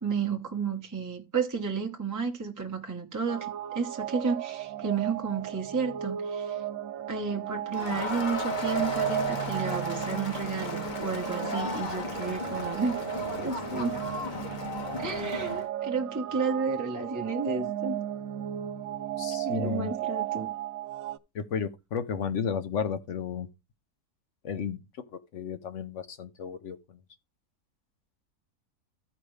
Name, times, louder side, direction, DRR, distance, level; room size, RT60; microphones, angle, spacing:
voice 1, 0.0-6.6 7.1-13.0 13.4-14.0 15.0-18.0 19.4-20.5, right 5 dB, 15° right, 0.9 m, -32 dB
sound 1, 3.3-21.2, right 12 dB, 70° right, 1.0 m, -35 dB
Crowd, 7.7-15.7, left 1 dB, 35° left, 1.0 m, -34 dB
voice 2, 19.2-19.9 21.3-23.5 24.4-24.8 25.1-27.0, left 7 dB, 55° left, 1.0 m, -33 dB
14.0 x 5.0 x 3.2 m
omnidirectional pair, 1.6 m